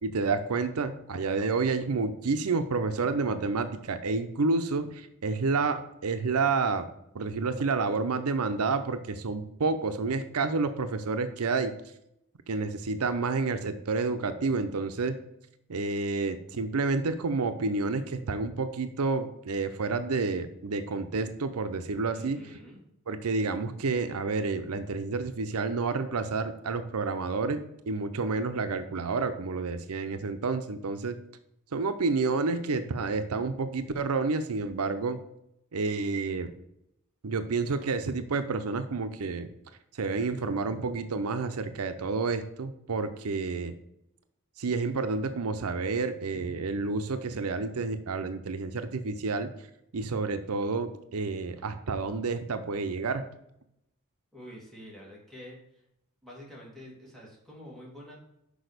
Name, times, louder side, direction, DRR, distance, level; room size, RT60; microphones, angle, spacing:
voice 1, 0.0-6.9 7.1-11.7 12.5-15.2 15.7-22.6 23.1-31.2 31.7-35.2 35.7-36.5 37.2-39.5 39.9-43.7 44.6-49.5 49.9-53.2, right 4 dB, 85° right, 9 dB, 0.6 m, -29 dB
voice 2, 22.1-22.8 54.3-55.6 56.2-58.2, equal, ahead, -5 dB, 2.5 m, -47 dB
6.2 x 5.0 x 6.6 m, 0.79 s
head